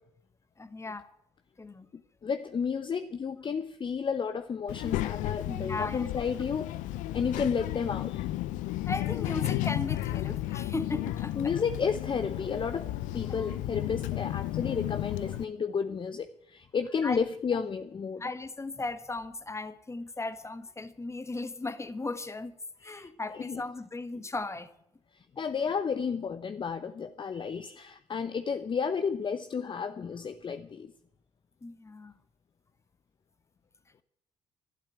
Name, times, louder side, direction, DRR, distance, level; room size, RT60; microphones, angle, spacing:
voice 1, 0.6-1.1 1.6-1.9 5.4-6.2 8.9-11.5 13.3-13.6 15.9-16.0 17.0-17.2 17.5-17.7 18.2-22.5 22.8-24.7 31.6-32.1, left 3 dB, 20° left, 1.5 m, -37 dB
voice 2, 2.2-6.7 7.1-8.3 11.3-18.2 22.8-23.1 23.4-23.6 25.4-30.9, left 6 dB, 35° left, 0.8 m, -32 dB
Child speech kid speaking, 4.7-15.4, left 14 dB, 70° left, 0.6 m, -33 dB
12.0 x 11.5 x 9.9 m
hypercardioid pair, 50°, 14 cm